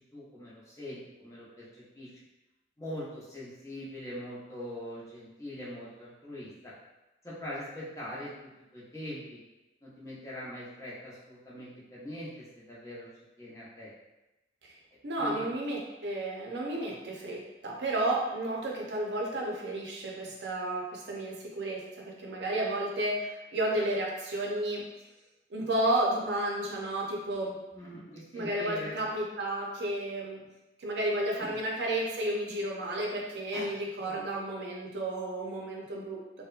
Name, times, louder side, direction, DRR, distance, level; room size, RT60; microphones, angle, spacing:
voice 1, 0.1-2.2 2.8-6.7 7.2-9.4 9.8-13.1 13.4-13.9 15.2-15.5 27.7-29.0 31.4-31.6 33.5-33.7 34.0-34.3, left 1 dB, 20° left, -8 dB, 0.6 m, -42 dB
voice 2, 15.0-24.8 25.5-27.5 28.3-30.4 30.8-36.2, right 1 dB, 80° right, -2 dB, 0.6 m, -32 dB
2.8 x 2.1 x 2.4 m, 1.0 s
head